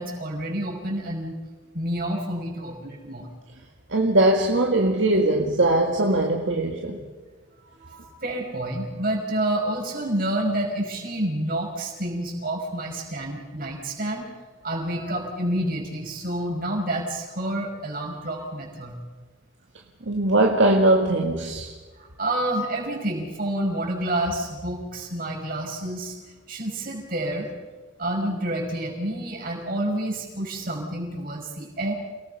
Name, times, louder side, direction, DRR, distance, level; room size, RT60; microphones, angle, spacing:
voice 1, 0.0-1.4 1.7-3.3 7.8-14.3 14.6-19.0 22.0-26.2 26.5-27.5 28.0-31.9, right 1 dB, 50° right, 0 dB, 5.9 m, -29 dB
voice 2, 3.9-7.0 20.1-21.7, right 2 dB, 75° right, 0 dB, 2.1 m, -20 dB
29.5 x 18.5 x 5.7 m, 1.3 s
head